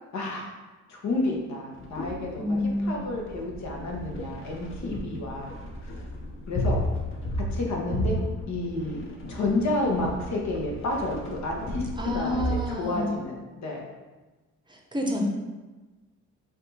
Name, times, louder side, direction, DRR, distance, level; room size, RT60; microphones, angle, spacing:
voice 1, 0.1-0.5 0.9-5.5 6.5-6.8 7.5-8.2 8.5-11.9 12.1-13.9, left 2 dB, 65° left, -1 dB, 1.2 m, -30 dB
sound 1, 1.7-12.6, equal, 45° left, 1.0 m, -34 dB
voice 2, 2.4-3.0 12.0-13.1 14.7-15.2, left 1 dB, 15° right, 0 dB, 0.8 m, -29 dB
5.1 x 2.6 x 4.0 m, 1.2 s
cardioid pair, 90°, 30 cm